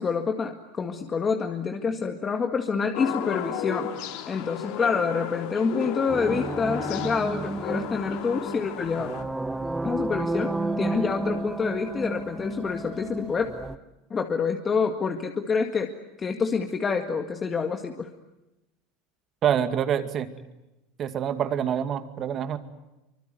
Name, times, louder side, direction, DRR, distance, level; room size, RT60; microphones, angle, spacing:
voice 1, 0.0-3.9 4.3-9.1 9.8-13.5 14.1-15.9 16.2-18.1, left 5 dB, 25° left, 5 dB, 1.9 m, -27 dB
sound 1, 2.9-9.2, left 10 dB, 65° left, 3.4 m, -34 dB
sound 2, 6.1-13.8, right 2 dB, 10° right, 1.2 m, -32 dB
voice 2, 19.4-20.3 21.0-22.6, right 9 dB, 35° right, 9 dB, 2.3 m, -26 dB
25.0 x 25.0 x 9.4 m, 0.99 s
supercardioid pair, 130°, 0 cm